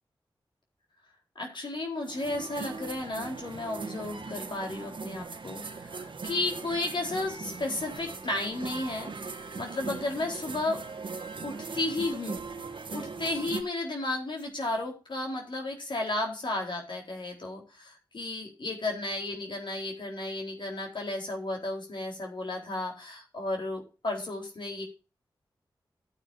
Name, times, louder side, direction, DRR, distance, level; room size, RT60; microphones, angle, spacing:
voice 1, 1.4-10.8 11.4-12.4 12.9-24.8, left 2 dB, 65° left, 1 dB, 4.0 m, -33 dB
sound 1, 2.0-13.6, right 4 dB, 70° right, 1.5 m, -40 dB
14.0 x 8.8 x 2.7 m, 0.32 s
cardioid pair, 55°, 9 cm